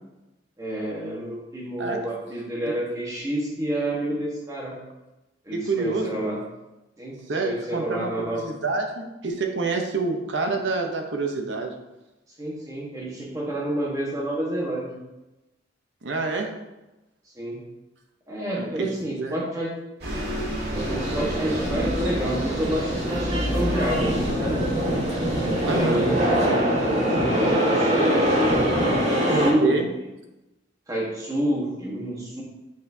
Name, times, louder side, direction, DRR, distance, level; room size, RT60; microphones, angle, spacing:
voice 1, 0.6-4.8 5.4-6.4 7.0-8.4 12.4-15.0 17.3-17.6 18.3-19.7 20.7-24.6 25.3-26.5 26.8-28.3 29.2-29.8 30.9-32.4, right 1 dB, 20° right, -3 dB, 1.4 m, -29 dB
voice 2, 5.5-6.2 7.3-11.7 16.0-16.6 18.6-19.4 25.7-26.0 29.3-29.9, right 3 dB, 75° right, 3 dB, 0.8 m, -27 dB
Bus, 20.0-25.8, equal, 60° right, 1.8 m, -31 dB
sound 1, 20.8-29.5, equal, 40° right, 1.4 m, -24 dB
8.3 x 4.2 x 2.7 m, 1.0 s
head